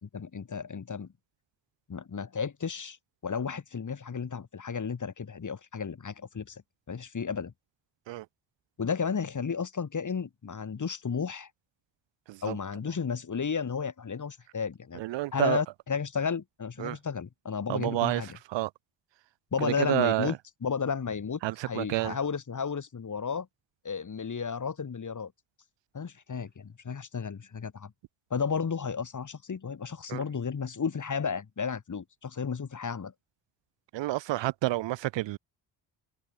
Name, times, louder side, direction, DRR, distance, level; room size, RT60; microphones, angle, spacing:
voice 1, 0.0-1.1 1.9-3.0 3.2-6.6 6.9-7.5 8.8-11.5 12.4-15.0 15.3-18.3 19.5-20.3 20.6-23.5 23.8-25.3 25.9-27.9 28.3-33.1, left 6 dB, 40° left, 2.9 m, -33 dB
voice 2, 15.0-15.6 16.8-17.0 17.7-18.2 18.5-18.7 19.6-20.3 21.4-22.2 30.1-30.2 33.9-35.4, right 16 dB, 70° right, 0.6 m, -29 dB
open air
cardioid pair, 75°, 45 cm